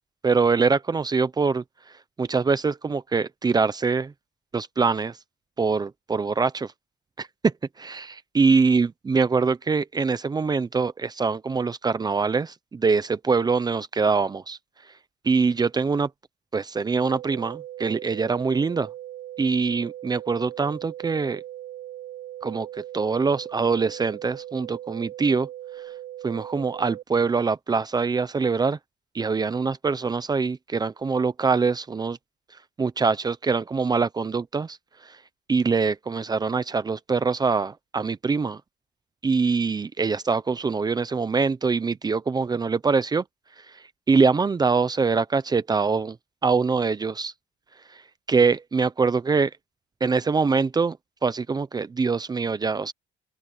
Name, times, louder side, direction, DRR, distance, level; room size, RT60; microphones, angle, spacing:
voice 1, 0.2-1.6 2.2-4.1 4.5-5.1 5.6-6.7 7.2-7.5 7.8-14.6 15.2-16.1 16.5-18.9 19.4-21.4 22.4-22.7 22.9-25.5 26.2-28.8 29.1-32.2 32.8-34.8 35.5-38.6 39.2-43.2 44.1-46.2 46.4-47.3 48.3-49.5 50.0-51.0 51.2-52.9, right 4 dB, 25° right, 0.8 m, -23 dB
sound 1, 17.0-27.0, right 13 dB, 70° right, 4.4 m, -39 dB
open air
cardioid pair, 110°, 17 cm